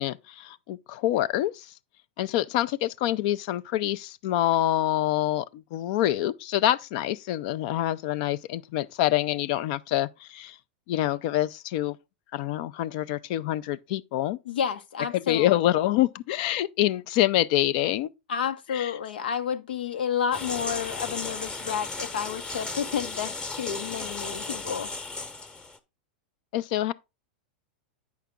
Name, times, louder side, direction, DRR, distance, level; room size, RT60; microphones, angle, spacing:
voice 1, 0.0-1.7 2.2-10.6 10.9-12.0 12.3-14.4 15.1-18.1 18.7-18.9 26.5-26.9, left 13 dB, 55° left, 0.5 m, -26 dB
voice 2, 14.5-15.6 18.3-24.9, left 8 dB, 90° left, 1.1 m, -30 dB
sound 1, 20.3-25.8, left 3 dB, 15° left, 1.0 m, -35 dB
8.4 x 5.7 x 3.7 m
supercardioid pair, 130°, 5 cm